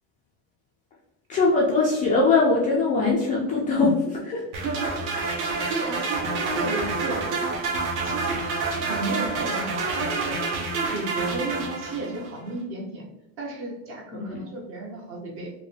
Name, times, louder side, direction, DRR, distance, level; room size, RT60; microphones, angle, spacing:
voice 1, 1.3-4.4 14.1-14.4, left 3 dB, 20° left, -4 dB, 0.4 m, -21 dB
sound 1, 4.5-12.3, right 3 dB, 70° right, 1.3 m, -28 dB
voice 2, 4.6-5.3 5.6-7.3 8.0-10.4 10.7-13.0 13.4-15.5, right 3 dB, 35° right, 0 dB, 0.9 m, -33 dB
4.7 x 2.2 x 3.2 m, 0.88 s
cardioid pair, 160°, 37 cm